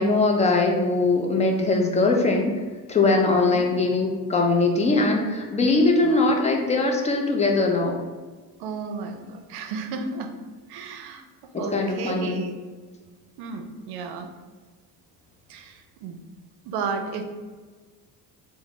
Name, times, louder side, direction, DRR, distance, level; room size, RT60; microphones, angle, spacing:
voice 1, 0.0-2.5 2.9-8.0 11.5-12.3, left 3 dB, 20° left, 2 dB, 0.4 m, -21 dB
voice 2, 3.2-3.6 6.0-6.2 8.6-10.3 10.7-11.2 11.6-12.6 13.4-14.3 15.5-16.2 16.7-17.2, right 4 dB, 80° right, 6 dB, 0.5 m, -33 dB
3.6 x 2.0 x 3.6 m, 1.4 s
cardioid pair, 120°, 38 cm